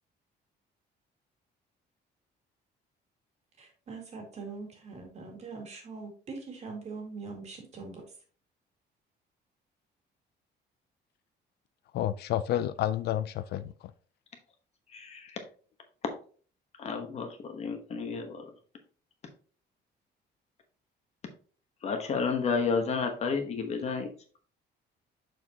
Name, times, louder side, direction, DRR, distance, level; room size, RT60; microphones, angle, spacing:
voice 1, 3.6-8.0, right 4 dB, 35° right, 2.1 m, -42 dB
voice 2, 11.9-13.9, left 11 dB, 65° left, 0.4 m, -30 dB
voice 3, 14.9-15.4 16.8-18.5 21.8-24.1, left 5 dB, 35° left, 1.1 m, -31 dB
6.8 x 6.3 x 2.8 m
cardioid pair, 170°, 18 cm